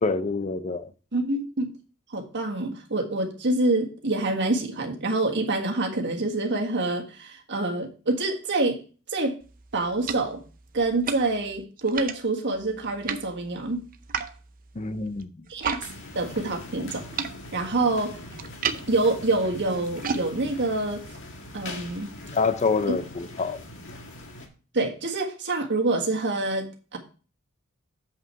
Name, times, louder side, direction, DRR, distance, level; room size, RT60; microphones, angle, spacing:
voice 1, 0.0-0.9 14.8-15.5 22.3-23.6, left 4 dB, 30° left, 0.5 m, -26 dB
voice 2, 1.1-1.7 2.1-8.8 9.1-9.4 9.7-10.4 10.7-13.8 15.5-15.8 16.1-17.0 17.5-18.2 18.9-21.0 21.5-22.1 22.9-23.0 24.7-27.0, right 2 dB, 55° right, 1.6 m, -26 dB
sound 1, 9.4-15.9 16.1-22.0, right 5 dB, 40° right, 0.6 m, -36 dB
sound 2, 15.8-24.5, left 1 dB, 60° left, 1.7 m, -42 dB
7.7 x 5.5 x 4.5 m
head